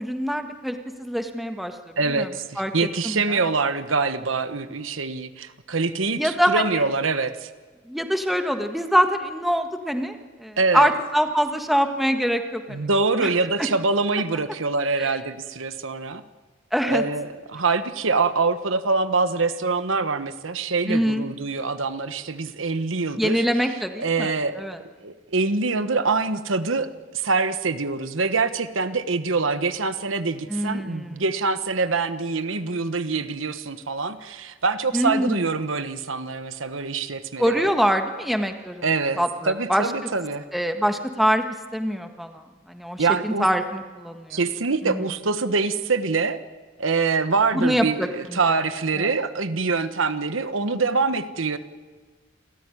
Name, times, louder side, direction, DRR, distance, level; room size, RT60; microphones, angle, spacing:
voice 1, 0.0-1.8 2.1-2.3 2.6-2.7 3.0-3.4 6.1-6.8 7.9-12.8 13.2-13.3 15.0-15.1 16.7-17.0 20.9-21.2 23.2-24.3 24.6-24.8 30.5-31.2 34.9-35.4 37.4-38.8 39.2-39.9 40.5-41.4 41.7-42.4 42.7-44.4 44.8-45.1 47.5-48.4 49.0-49.1, equal, ahead, 6 dB, 1.5 m, -24 dB
voice 2, 2.0-7.5 10.6-10.9 12.7-16.2 16.9-23.4 24.0-26.9 27.1-37.7 38.8-40.4 43.0-43.5 44.3-46.4 46.8-51.6, right 4 dB, 80° right, 11 dB, 1.2 m, -25 dB
28.0 x 14.0 x 9.8 m, 1.4 s
head